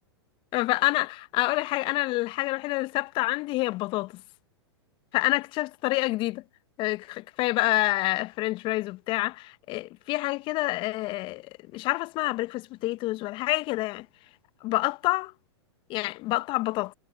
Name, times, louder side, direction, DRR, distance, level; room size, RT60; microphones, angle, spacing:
voice 1, 0.5-4.2 5.1-6.4 6.8-11.4 11.7-14.1 14.6-15.3 15.9-16.9, left 20 dB, 35° left, 0.6 m, -27 dB
hypercardioid pair, 110°, 14 cm